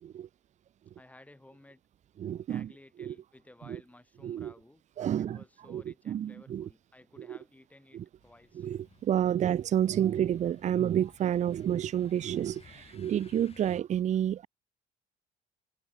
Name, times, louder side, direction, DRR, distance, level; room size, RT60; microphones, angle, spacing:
voice 1, 1.0-1.8 2.5-4.8 5.2-8.7, left 1 dB, 10° left, 4.8 m, -56 dB
voice 2, 2.2-2.7 3.0-3.1 3.7-3.8 4.2-4.5 5.0-5.4 5.7-6.7 7.2-7.4 7.9-8.0 8.5-14.5, right 10 dB, 45° right, 0.6 m, -30 dB
sound 1, 8.2-13.8, left 6 dB, 35° left, 6.7 m, -58 dB
cardioid pair, 110°, 17 cm